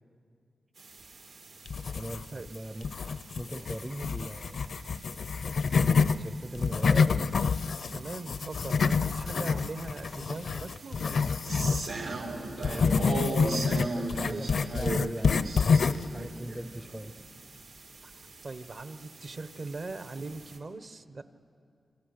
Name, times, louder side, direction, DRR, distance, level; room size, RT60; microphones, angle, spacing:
sound 1, 0.8-20.6, right 2 dB, 80° right, 3.1 m, -40 dB
sound 2, 1.7-2.5 2.8-6.2 6.5-11.9 12.6-16.1, left 5 dB, 65° left, 0.5 m, -27 dB
voice 1, 1.9-2.9 3.4-4.7 5.8-7.2 12.6-15.7 16.1-17.2, right 1 dB, 10° right, 9 dB, 0.6 m, -40 dB
voice 2, 7.9-11.2 18.4-21.2, right 3 dB, 45° right, 11 dB, 1.0 m, -40 dB
28.0 x 27.0 x 6.6 m, 2.5 s
wide cardioid pair, 150°, 0 cm